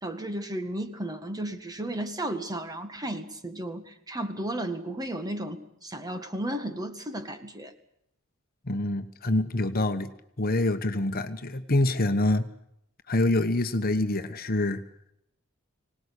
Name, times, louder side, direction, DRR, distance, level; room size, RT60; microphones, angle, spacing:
voice 1, 0.0-7.7, right 1 dB, 20° right, 7 dB, 1.8 m, -34 dB
voice 2, 8.6-10.1 10.4-12.5 13.1-14.8, left 2 dB, 45° left, 9 dB, 1.2 m, -26 dB
25.0 x 19.0 x 8.4 m, 0.75 s
head